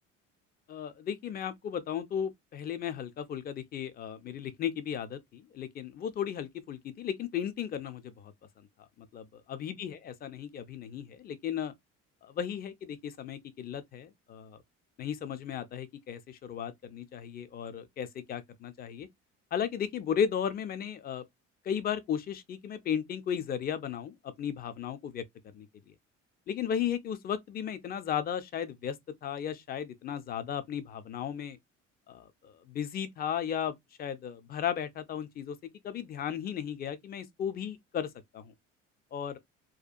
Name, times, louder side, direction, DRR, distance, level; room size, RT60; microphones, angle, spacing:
voice 1, 0.7-8.3 8.6-8.7 9.6-11.7 12.2-14.6 15.0-19.1 19.5-21.2 21.6-25.7 26.5-29.0 29.2-31.6 32.1-35.6 35.8-38.5 39.1-39.4, left 8 dB, 25° left, 0.4 m, -35 dB
2.7 x 2.3 x 2.4 m
figure-of-eight pair, 55°, 38 cm